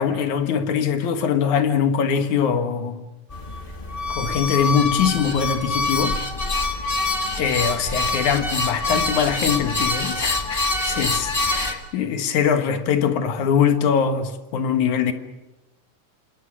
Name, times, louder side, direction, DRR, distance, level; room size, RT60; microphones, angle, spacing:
voice 1, 0.0-3.0 4.1-6.2 7.4-15.1, left 7 dB, 65° left, 2.7 m, -22 dB
sound 1, 3.3-11.7, left 2 dB, 30° left, 1.0 m, -25 dB
28.0 x 26.5 x 6.3 m
omnidirectional pair, 4.0 m